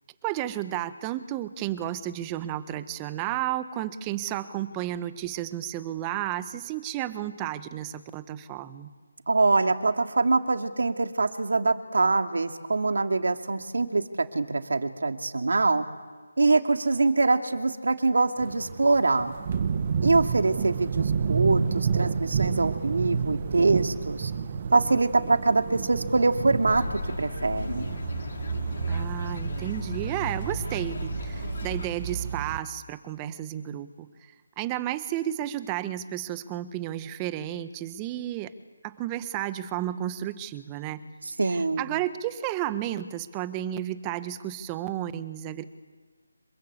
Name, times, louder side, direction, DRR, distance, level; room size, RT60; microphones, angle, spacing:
voice 1, 0.2-8.9 28.9-34.1 34.6-38.5 38.8-41.0 41.5-45.6, right 12 dB, 15° right, 13 dB, 1.2 m, -32 dB
voice 2, 9.3-15.9 16.4-19.3 20.0-24.3 24.7-27.9 41.4-41.9, right 3 dB, 75° right, 6 dB, 2.6 m, -24 dB
sound 1, 18.4-32.6, right 6 dB, 35° right, 1.3 m, -30 dB
sound 2, 26.7-31.9, left 3 dB, 55° left, 2.7 m, -36 dB
27.0 x 22.5 x 8.3 m, 1.5 s
figure-of-eight pair, 165°, 0 cm